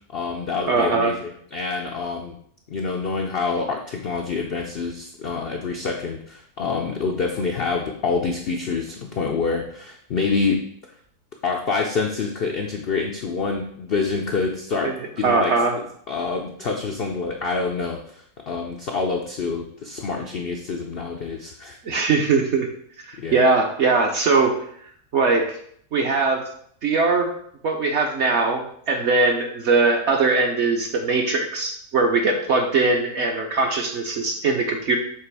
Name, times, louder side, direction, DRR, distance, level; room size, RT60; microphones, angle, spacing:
voice 1, 0.1-2.4 2.7-10.6 11.4-15.6 16.1-21.8 23.2-23.5, left 4 dB, 90° left, 2 dB, 0.5 m, -27 dB
voice 2, 0.7-1.1 14.8-14.9 15.2-15.7 21.8-22.7 23.1-24.5 25.1-25.4 25.9-26.4 26.8-27.3 27.6-35.0, right 3 dB, 60° right, 2 dB, 0.8 m, -20 dB
6.7 x 3.0 x 4.7 m, 0.64 s
omnidirectional pair, 1.8 m